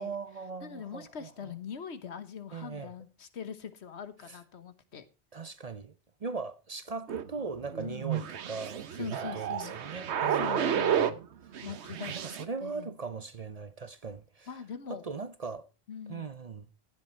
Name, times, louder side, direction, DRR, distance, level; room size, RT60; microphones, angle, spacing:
voice 1, 0.0-1.5 2.5-2.9 4.3-4.4 5.3-5.9 6.2-9.1 9.3-11.2 12.1-14.5 14.9-15.7 16.1-16.7, right 4 dB, 45° right, 0.6 m, -39 dB
voice 2, 0.6-5.0 7.8-8.1 9.0-9.8 10.2-11.1 11.6-12.9 14.5-15.1 15.9-16.3, left 7 dB, 80° left, 1.4 m, -42 dB
sound 1, 7.1-11.2 11.5-12.4, right 8 dB, 90° right, 1.1 m, -31 dB
15.0 x 7.6 x 4.4 m
omnidirectional pair, 1.1 m